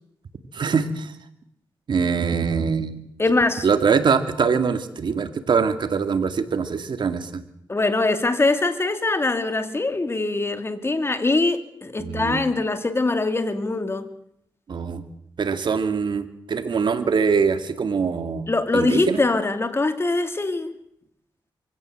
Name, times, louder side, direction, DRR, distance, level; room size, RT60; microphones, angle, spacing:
voice 1, 0.5-1.1 1.9-3.0 3.6-7.4 12.0-12.4 14.7-15.0 15.4-19.2, right 5 dB, 65° right, 9 dB, 2.2 m, -23 dB
voice 2, 3.2-3.7 7.7-14.1 18.5-20.7, left 2 dB, 30° left, 9 dB, 2.4 m, -23 dB
24.0 x 16.5 x 7.9 m, 0.74 s
cardioid pair, 70°, 8 cm